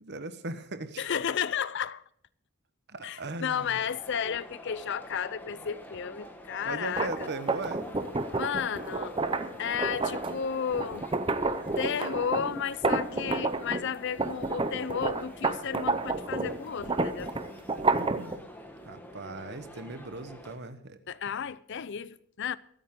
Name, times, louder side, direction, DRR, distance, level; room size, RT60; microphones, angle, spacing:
voice 1, 0.0-1.0 2.9-3.8 6.6-7.9 17.9-18.4 18.8-21.0, right 2 dB, 50° right, 1.1 m, -39 dB
voice 2, 1.0-2.0 3.0-7.3 8.3-9.2 9.6-11.0 11.8-17.4 21.1-22.6, left 7 dB, 50° left, 0.5 m, -33 dB
sound 1, 3.5-20.6, equal, 10° left, 1.5 m, -47 dB
sound 2, 6.8-13.9 14.2-18.4, right 3 dB, 25° right, 0.7 m, -30 dB
23.0 x 9.0 x 3.7 m
head